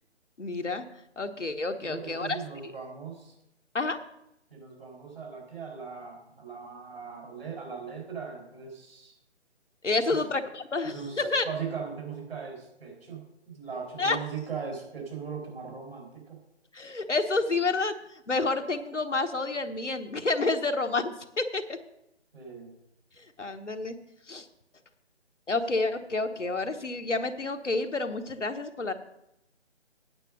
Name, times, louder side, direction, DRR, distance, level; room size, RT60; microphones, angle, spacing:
voice 1, 0.4-0.8 1.2-2.4 3.7-4.0 9.8-11.5 14.0-14.2 16.7-17.9 18.3-21.6 23.2-23.9 24.3-24.5 25.5-28.9, left 3 dB, 85° left, 6 dB, 1.1 m, -29 dB
voice 2, 1.8-3.3 4.5-9.2 10.1-10.3 10.8-16.4 22.3-22.7, right 6 dB, 55° right, 0 dB, 4.5 m, -39 dB
9.1 x 7.3 x 6.4 m, 0.84 s
figure-of-eight pair, 150°, 35 cm